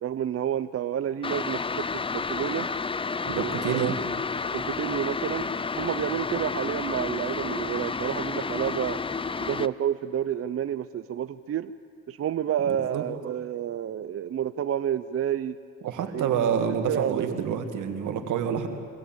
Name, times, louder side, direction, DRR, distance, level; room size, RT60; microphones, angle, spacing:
voice 1, 0.0-2.7 3.4-4.0 4.5-9.0 9.4-11.7 12.1-15.6 16.1-16.3 16.9-17.4, right 10 dB, 50° right, 13 dB, 0.6 m, -30 dB
sound 1, 1.2-9.7, left 4 dB, 20° left, 0.5 m, -31 dB
voice 2, 3.2-3.9 12.9-13.0 15.8-18.7, right 7 dB, 80° right, 7 dB, 2.1 m, -28 dB
25.0 x 17.0 x 8.9 m, 2.4 s
cardioid pair, 90°, 30 cm